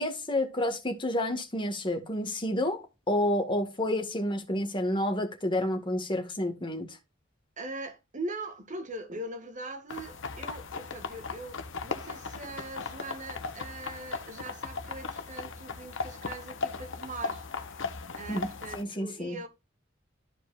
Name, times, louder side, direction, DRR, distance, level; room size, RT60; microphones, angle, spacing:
voice 1, 0.0-7.0 18.3-18.5 18.7-19.4, left 1 dB, 25° left, 1.7 m, -30 dB
voice 2, 7.6-17.6 18.1-19.5, right 2 dB, 40° right, 1.7 m, -41 dB
sound 1, 9.9-18.8, left 4 dB, 70° left, 1.0 m, -37 dB
13.5 x 4.9 x 2.5 m
head